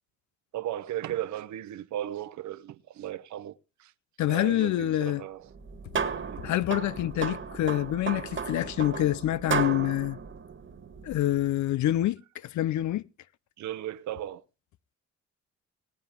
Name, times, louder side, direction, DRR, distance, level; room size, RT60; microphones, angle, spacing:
voice 1, 0.5-3.5 3.8-3.9 4.3-5.4 6.2-6.5 13.6-14.4, right 12 dB, 70° right, 0.8 m, -36 dB
voice 2, 4.2-5.2 6.4-10.2 11.0-13.0, left 14 dB, 70° left, 0.6 m, -27 dB
sound 1, 5.5-11.4, right 6 dB, 40° right, 1.6 m, -34 dB
19.5 x 9.4 x 3.6 m
cardioid pair, 90°, 30 cm